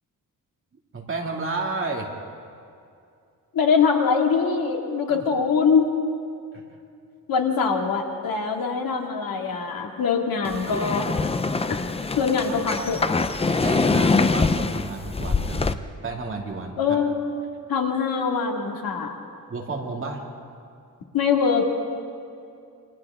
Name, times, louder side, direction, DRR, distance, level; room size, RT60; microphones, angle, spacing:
voice 1, 0.9-2.1 5.1-5.2 6.5-6.6 12.5-12.9 13.4-15.7 16.0-17.0 19.5-20.2, right 3 dB, 35° right, 0 dB, 2.5 m, -31 dB
voice 2, 3.5-5.9 7.3-11.1 11.7-11.8 12.2-13.0 16.8-17.1 17.7-19.1 21.1-21.6, left 5 dB, 90° left, 2 dB, 2.2 m, -23 dB
sound 1, 10.4-15.7, left 4 dB, 15° left, 0.5 m, -24 dB
28.5 x 25.0 x 3.7 m, 2.5 s
wide cardioid pair, 165°, 34 cm